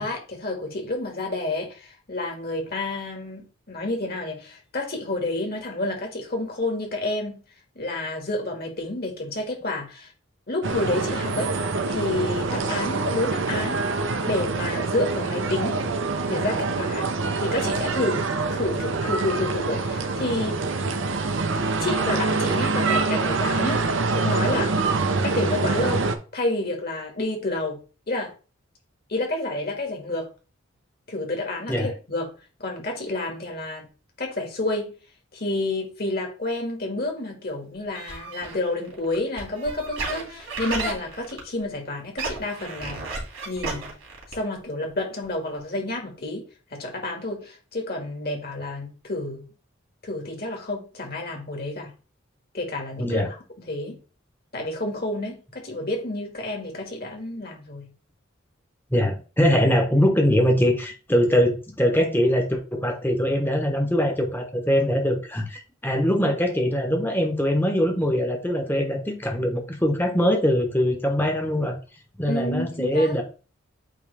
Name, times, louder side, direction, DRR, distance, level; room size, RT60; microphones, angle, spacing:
voice 1, 0.0-7.4 7.8-10.1 10.5-11.5 11.9-13.8 14.3-15.8 16.3-17.1 17.4-20.6 21.5-23.8 24.1-24.8 25.2-26.0 26.3-27.8 28.1-28.3 29.1-30.3 31.1-32.3 32.6-33.9 34.2-34.9 35.3-43.1 43.5-43.8 44.3-46.4 46.7-49.4 50.0-51.9 52.5-53.4 53.7-54.0 54.5-55.4 55.6-57.9 72.3-73.2, left 2 dB, 50° left, 2 dB, 2.0 m, -29 dB
sound 1, 10.6-26.2, right 3 dB, 65° right, 0.7 m, -25 dB
sound 2, 37.9-41.7 42.0-44.6 44.9-45.0 45.2-45.3 45.6-45.7, right 3 dB, 85° right, 2.7 m, -33 dB
voice 2, 53.0-53.3 58.9-71.8 72.2-73.2, equal, 10° left, 3 dB, 1.1 m, -22 dB
8.5 x 3.2 x 3.4 m, 0.35 s
head